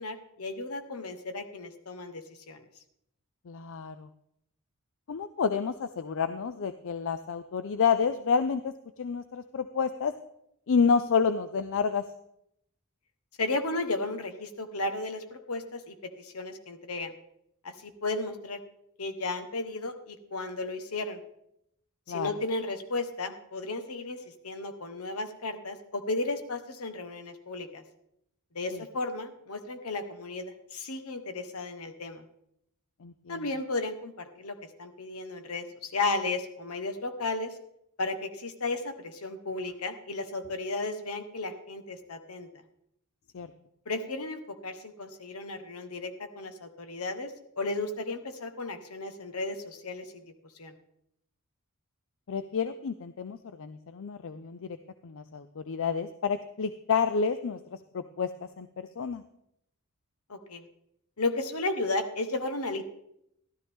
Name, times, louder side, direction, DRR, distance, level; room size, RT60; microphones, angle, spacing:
voice 1, 0.0-2.6 13.4-17.1 17.6-18.6 19.0-21.2 22.1-27.8 28.5-32.2 33.3-37.6 38.0-42.5 43.9-50.2 50.6-50.7 60.3-60.7 61.2-62.8, left 2 dB, 80° left, 9 dB, 1.2 m, -34 dB
voice 2, 3.5-4.1 5.1-10.1 10.7-12.0 22.1-22.3 28.7-28.8 33.0-33.5 43.3-43.5 52.3-54.8 55.0-59.2, left 6 dB, 60° left, 11 dB, 0.5 m, -29 dB
13.0 x 12.5 x 3.6 m, 0.78 s
head